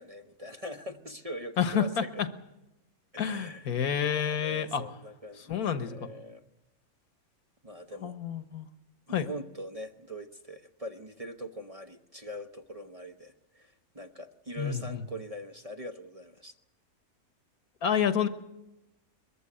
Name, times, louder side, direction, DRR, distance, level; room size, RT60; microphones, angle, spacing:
voice 1, 0.0-2.2 3.1-3.7 4.1-6.4 7.6-8.2 9.1-16.5, equal, 30° right, 6 dB, 0.9 m, -42 dB
voice 2, 1.6-2.0 3.2-4.8 5.5-6.1 8.0-8.7 9.1-9.3 14.6-15.0 17.8-18.3, left 8 dB, 80° left, 10 dB, 1.7 m, -29 dB
22.0 x 14.5 x 9.9 m, 0.94 s
omnidirectional pair, 1.6 m